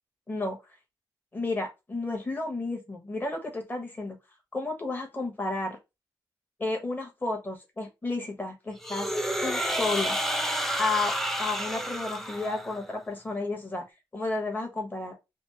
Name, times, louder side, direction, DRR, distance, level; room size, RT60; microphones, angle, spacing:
voice 1, 0.3-0.6 1.3-4.2 4.5-5.8 6.6-9.1 9.4-10.2 10.8-13.8 14.1-15.2, left 3 dB, 25° left, 1.3 m, -32 dB
sound 1, 8.8-12.9, equal, 5° left, 0.6 m, -30 dB
5.0 x 2.0 x 3.0 m
cardioid pair, 60°, 8 cm